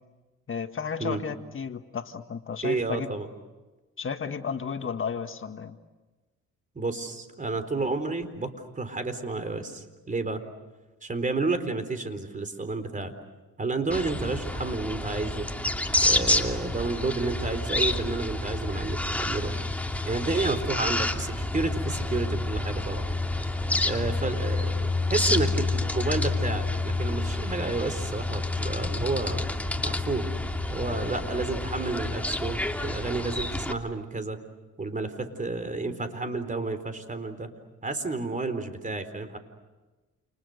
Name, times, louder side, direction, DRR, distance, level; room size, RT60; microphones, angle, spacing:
voice 1, 0.5-3.1 4.0-5.8, left 6 dB, 40° left, 7 dB, 1.7 m, -33 dB
voice 2, 2.6-3.3 4.8-4.9 6.7-10.4 11.0-13.1 13.6-15.5 16.0-19.5 20.1-23.0 23.7-29.5 29.8-30.3 30.7-34.4 34.8-37.5 37.8-39.4, right 3 dB, 25° right, 10 dB, 4.1 m, -31 dB
sound 1, 13.9-33.7, left 2 dB, 5° left, 2.6 m, -29 dB
29.5 x 29.5 x 6.7 m, 1.2 s
cardioid pair, 90°, 30 cm